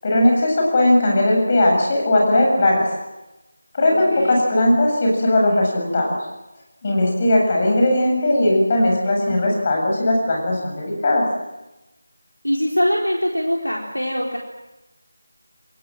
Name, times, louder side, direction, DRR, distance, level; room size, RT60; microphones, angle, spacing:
voice 1, 0.0-2.9 3.7-6.2 6.8-11.2, left 1 dB, 30° left, 0 dB, 7.7 m, -18 dB
voice 2, 3.9-4.4 12.4-14.4, equal, 85° left, -1 dB, 4.4 m, -22 dB
28.5 x 20.5 x 7.9 m, 1.0 s
figure-of-eight pair, 165°, 0 cm